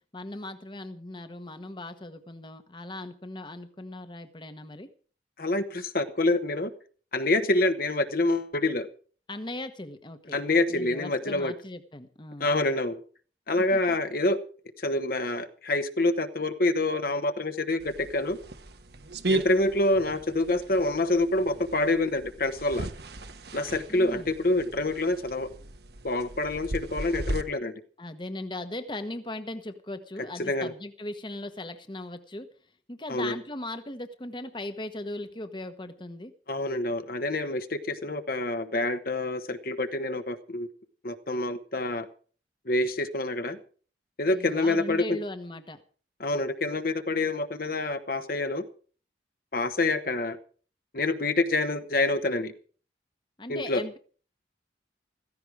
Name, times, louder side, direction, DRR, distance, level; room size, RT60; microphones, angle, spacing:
voice 1, 0.1-4.9 9.3-10.4 10.7-12.5 13.6-14.0 23.9-24.3 28.0-32.5 32.9-36.3 44.3-45.8 53.4-54.0, left 1 dB, 25° left, 9 dB, 1.1 m, -38 dB
voice 2, 5.4-6.7 7.1-8.9 10.3-11.5 12.4-13.0 13.5-14.4 14.8-18.4 19.3-22.9 23.5-25.5 26.0-27.7 30.4-30.7 33.1-33.3 36.5-40.7 41.0-42.1 42.7-43.6 44.2-45.2 46.2-48.7 49.5-50.4 50.9-52.5 53.5-53.8, left 2 dB, 55° left, 9 dB, 1.2 m, -27 dB
sound 1, 17.8-27.4, right 2 dB, 65° right, 1.3 m, -36 dB
15.5 x 14.5 x 4.8 m, 0.42 s
head